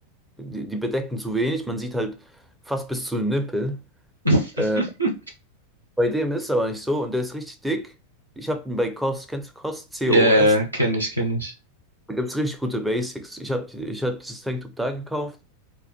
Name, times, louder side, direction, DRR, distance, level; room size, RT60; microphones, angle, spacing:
voice 1, 0.4-2.2 2.7-3.8 4.6-4.8 6.0-7.9 8.4-10.5 12.1-15.4, equal, 5° right, 0.4 m, -27 dB
voice 2, 4.8-5.1 10.1-11.5, right 1 dB, 85° right, 0.4 m, -20 dB
2.1 x 2.1 x 2.7 m
figure-of-eight pair, 90°, 0 cm